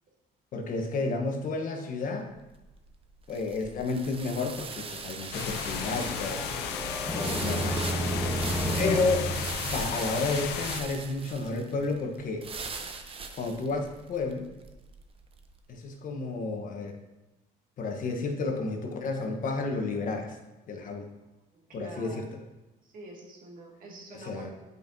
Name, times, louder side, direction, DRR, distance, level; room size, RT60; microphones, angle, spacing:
voice 1, 0.5-2.3 3.3-6.7 7.1-7.8 8.4-9.3 9.7-12.5 13.4-14.5 15.7-17.0 17.8-20.4 20.7-21.1 21.7-22.3 24.2-24.5, left 3 dB, 55° left, 4 dB, 1.0 m, -31 dB
sound 1, 2.3-15.6, right 4 dB, 35° right, 0.7 m, -41 dB
sound 2, 5.3-10.8, left 8 dB, 80° left, 0.6 m, -34 dB
sound 3, 5.7-10.5, right 1 dB, ahead, 0.8 m, -32 dB
voice 2, 8.6-8.9 21.5-22.2 22.8-24.5, right 2 dB, 55° right, -1 dB, 1.9 m, -45 dB
9.7 x 5.3 x 2.6 m, 1.0 s
cardioid pair, 110°, 17 cm